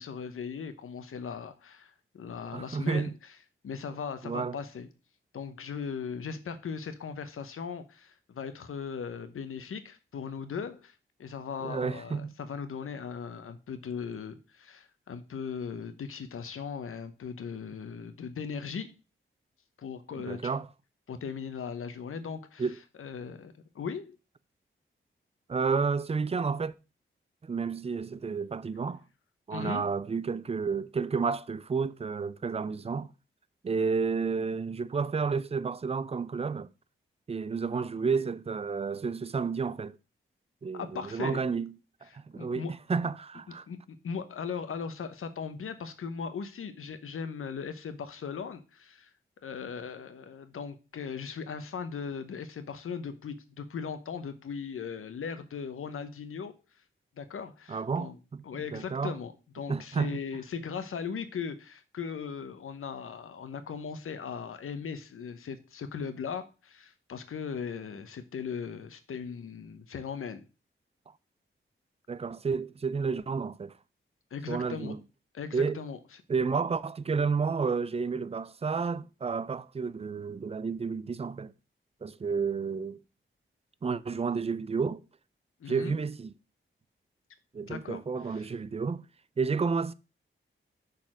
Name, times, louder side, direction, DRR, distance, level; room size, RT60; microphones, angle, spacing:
voice 1, 0.0-3.1 3.6-4.9 5.3-10.9 11.2-18.9 19.8-20.5 21.1-22.7 23.0-24.2 29.5-29.8 40.7-41.5 42.1-42.7 43.7-49.1 49.4-56.6 57.2-58.2 58.4-70.4 74.3-74.9 75.3-76.0 85.6-86.0 87.6-88.0 88.3-88.5, left 6 dB, 85° left, 0.9 m, -38 dB
voice 2, 2.5-3.1 4.2-4.6 11.6-12.4 20.2-20.7 22.6-22.8 25.5-26.7 27.4-29.0 29.5-33.1 33.6-36.7 37.3-40.0 40.6-41.8 42.0-43.6 57.7-58.4 58.7-59.2 59.7-60.2 72.1-73.7 74.5-75.0 75.5-75.8 76.3-81.5 82.0-83.0 83.8-85.0 85.7-86.3 87.5-89.0 89.4-89.9, right 5 dB, 30° right, 0.4 m, -31 dB
6.5 x 4.2 x 6.1 m
wide cardioid pair, 90°, 21 cm